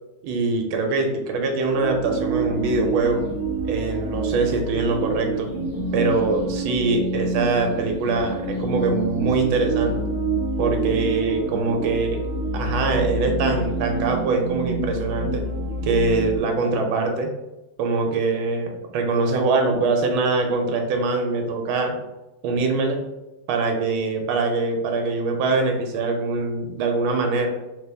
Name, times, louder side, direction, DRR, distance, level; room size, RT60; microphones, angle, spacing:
voice 1, 0.2-3.2 3.6-5.5 5.9-10.0 10.6-12.2 12.5-15.4 15.8-17.3 17.8-22.0 22.4-23.0 23.5-27.5, right 3 dB, 85° right, 3 dB, 1.5 m, -23 dB
sound 1, 1.6-16.4, right 2 dB, 25° right, 0.9 m, -27 dB
4.0 x 3.0 x 3.3 m, 1.0 s
omnidirectional pair, 2.2 m